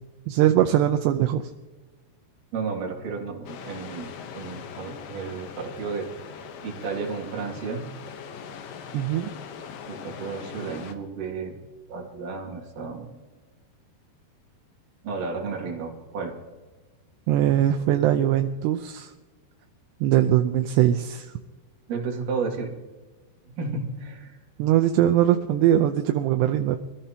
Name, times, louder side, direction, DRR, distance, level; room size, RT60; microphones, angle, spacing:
voice 1, 0.3-1.5 8.9-9.3 17.3-19.1 20.0-21.3 24.6-26.8, right 12 dB, 80° right, 6 dB, 2.5 m, -21 dB
voice 2, 2.5-4.1 4.4-6.1 6.6-7.9 9.9-11.5 11.9-13.1 15.0-16.4 21.9-22.7 23.6-24.4, right 4 dB, 55° right, 0 dB, 3.4 m, -32 dB
sound 1, 3.5-11.0, left 7 dB, 70° left, 2.2 m, -41 dB
24.5 x 14.5 x 2.9 m, 1.2 s
omnidirectional pair, 5.3 m